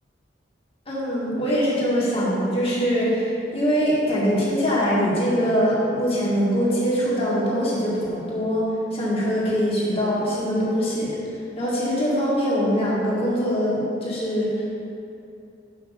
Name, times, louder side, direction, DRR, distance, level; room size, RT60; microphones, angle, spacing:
voice 1, 0.9-8.7 8.9-11.1 11.6-14.7, equal, 30° left, -6 dB, 1.9 m, -23 dB
6.0 x 5.1 x 6.5 m, 2.6 s
head